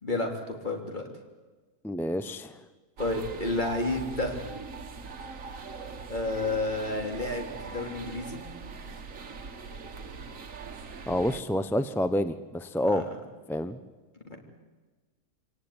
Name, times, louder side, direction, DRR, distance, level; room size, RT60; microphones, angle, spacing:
voice 1, 0.0-1.0 3.0-4.4 6.1-8.4 12.8-13.1 14.3-14.4, left 2 dB, 30° left, 2 dB, 3.6 m, -31 dB
voice 2, 1.8-2.6 11.1-13.0 13.5-13.8, left 1 dB, 5° left, 12 dB, 0.4 m, -28 dB
sound 1, 3.0-11.4, right 5 dB, 60° right, 1.8 m, -41 dB
26.5 x 17.5 x 9.7 m, 1.3 s
omnidirectional pair, 1.6 m